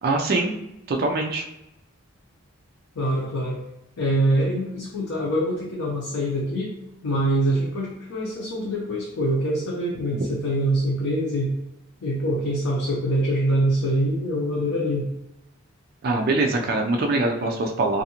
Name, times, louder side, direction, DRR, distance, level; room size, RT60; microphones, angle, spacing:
voice 1, 0.0-0.5 0.9-1.4 16.0-18.0, right 2 dB, 45° right, 2 dB, 0.3 m, -23 dB
voice 2, 3.0-3.6 4.0-6.7 7.0-11.5 12.0-15.1, right 1 dB, 75° left, -4 dB, 0.6 m, -24 dB
2.6 x 2.4 x 2.8 m, 0.88 s
head